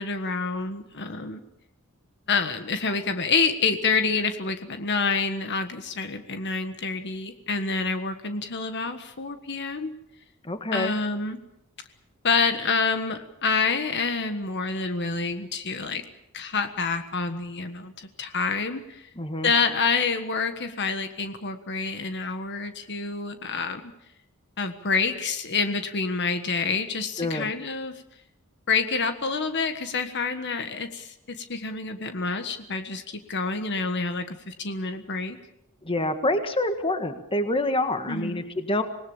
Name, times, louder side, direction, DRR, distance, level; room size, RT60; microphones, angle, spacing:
voice 1, 0.0-1.4 2.3-9.9 10.7-11.4 12.2-16.0 16.3-19.0 19.4-23.9 24.6-28.0 28.7-35.4 38.1-38.5, left 4 dB, 55° left, 8 dB, 1.5 m, -27 dB
voice 2, 10.4-10.9 19.2-19.5 27.2-27.5 35.8-38.8, left 1 dB, 25° left, 8 dB, 1.8 m, -27 dB
26.5 x 19.5 x 7.3 m, 0.83 s
head